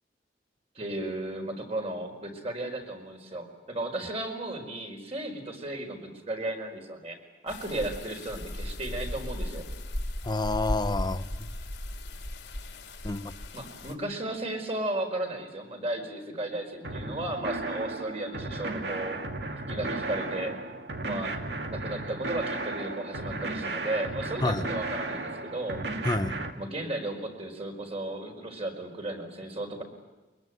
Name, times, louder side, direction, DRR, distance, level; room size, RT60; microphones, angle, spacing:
voice 1, 0.7-7.2 7.4-9.6 13.5-19.2 19.7-20.5 21.0-21.3 21.7-25.8 26.6-29.8, right 1 dB, 35° right, 3 dB, 4.8 m, -34 dB
sound 1, 7.5-13.9, left 1 dB, 85° left, 3.6 m, -36 dB
voice 2, 10.2-11.5 13.0-13.3 24.4-24.7 26.0-26.4, left 2 dB, 25° left, 11 dB, 0.9 m, -29 dB
sound 2, 16.8-26.5, right 2 dB, 75° right, 2.2 m, -34 dB
23.5 x 22.0 x 9.4 m, 1.2 s
head